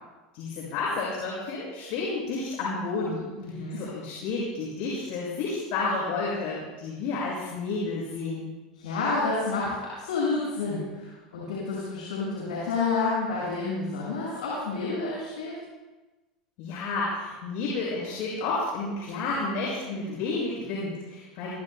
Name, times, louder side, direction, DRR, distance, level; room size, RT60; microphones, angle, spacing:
voice 1, 0.3-3.3 3.8-8.6 16.6-21.5, left 3 dB, 60° left, -5 dB, 6.6 m, -31 dB
voice 2, 3.4-3.8 8.7-15.5, left 3 dB, 80° left, -6 dB, 6.3 m, -29 dB
24.0 x 22.0 x 2.3 m, 1.1 s
hypercardioid pair, 90°, 4 cm